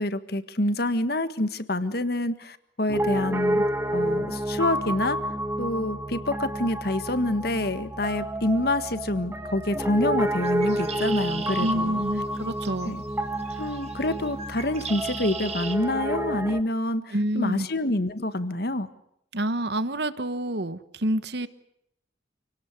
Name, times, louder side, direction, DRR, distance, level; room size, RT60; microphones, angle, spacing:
voice 1, 0.0-3.6 3.9-5.2 5.6-12.0 12.8-13.0 13.6-18.9, left 1 dB, 55° left, 12 dB, 1.7 m, -27 dB
Piano, 2.9-16.6, right 1 dB, 15° right, 1.6 m, -29 dB
Bird, 10.3-15.8, right 5 dB, 35° right, 2.1 m, -39 dB
voice 2, 11.6-13.0 17.1-17.7 19.3-21.5, right 1 dB, 60° right, 13 dB, 1.2 m, -28 dB
28.5 x 18.0 x 8.3 m, 0.77 s
head